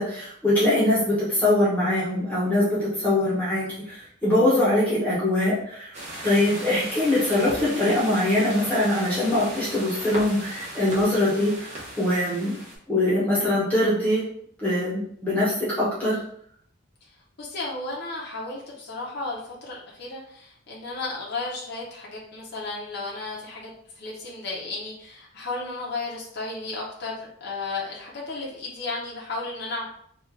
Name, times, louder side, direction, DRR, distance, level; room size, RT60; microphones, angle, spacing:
voice 1, 0.0-5.9 6.2-12.5 12.9-14.2 14.6-16.2, left 1 dB, 5° left, -9 dB, 0.9 m, -23 dB
sound 1, 5.9-12.8, right 1 dB, 35° right, 0.9 m, -37 dB
voice 2, 17.4-23.7 24.0-29.9, left 3 dB, 50° left, -4 dB, 0.7 m, -34 dB
3.1 x 2.4 x 3.6 m, 0.66 s
head